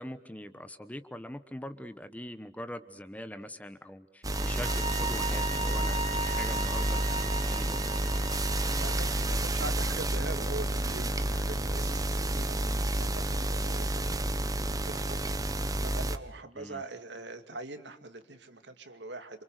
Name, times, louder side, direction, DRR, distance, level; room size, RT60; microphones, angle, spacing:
voice 1, 0.0-8.0 8.6-9.0 9.6-9.7 16.5-16.8, left 1 dB, 10° left, 11 dB, 1.0 m, -43 dB
sound 1, 4.2-16.2, right 1 dB, 20° right, 1.2 m, -30 dB
sound 2, 4.3-9.4, right 2 dB, 35° right, 2.0 m, -37 dB
voice 2, 8.8-12.6 13.0-14.2 14.7-15.5 15.8-19.4, right 2 dB, 70° right, 8 dB, 2.4 m, -42 dB
28.5 x 27.0 x 6.6 m, 0.67 s
head